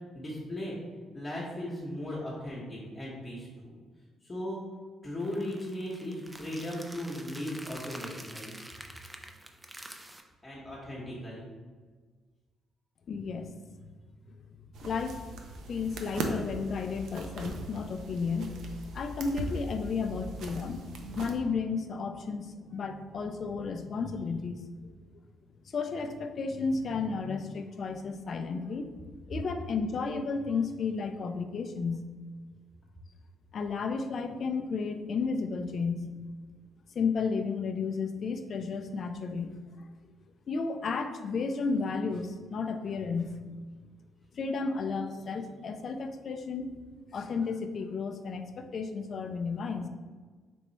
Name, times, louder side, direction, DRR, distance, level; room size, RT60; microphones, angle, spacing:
voice 1, 0.1-0.8 1.1-3.8 4.2-4.6 5.0-8.6 10.4-11.5, left 1 dB, 30° left, -6 dB, 1.0 m, -37 dB
sound 1, 5.2-10.2, right 1 dB, 10° right, 0.4 m, -47 dB
voice 2, 13.1-13.5 14.8-15.2 15.7-18.5 18.9-20.8 21.1-24.6 25.7-32.0 33.5-36.1 37.0-39.5 40.5-43.5 44.3-46.8 47.1-49.9, left 4 dB, 55° left, 7 dB, 0.4 m, -33 dB
sound 2, 14.7-21.4, right 2 dB, 75° right, 0.5 m, -39 dB
3.5 x 3.0 x 4.1 m, 1.4 s
cardioid pair, 90°, 0 cm